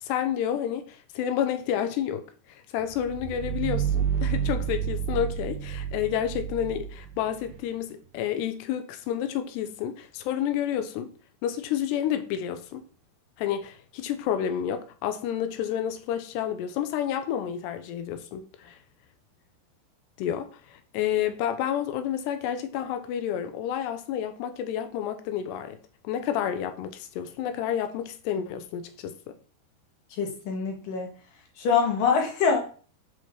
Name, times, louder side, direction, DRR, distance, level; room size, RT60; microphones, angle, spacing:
voice 1, 0.0-11.1 11.4-12.8 13.4-18.8 20.2-25.8 26.0-29.4, left 10 dB, 75° left, 2.7 m, -30 dB
sound 1, 2.9-7.6, right 8 dB, 85° right, 2.1 m, -30 dB
voice 2, 30.2-31.1 31.6-32.7, left 5 dB, 60° left, 2.8 m, -24 dB
7.9 x 5.2 x 5.9 m
omnidirectional pair, 5.4 m